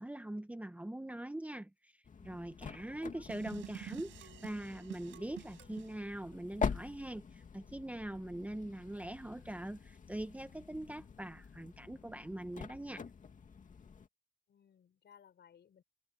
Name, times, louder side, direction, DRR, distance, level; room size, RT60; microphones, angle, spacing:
voice 1, 0.0-13.0, right 1 dB, 5° right, 1.1 m, -43 dB
sound 1, 2.0-14.1, left 6 dB, 40° left, 2.4 m, -45 dB
voice 2, 2.9-3.3 14.5-15.8, left 8 dB, 60° left, 6.3 m, -62 dB
sound 2, 3.3-5.9, right 13 dB, 80° right, 6.4 m, -49 dB
cardioid pair, 90°, 20 cm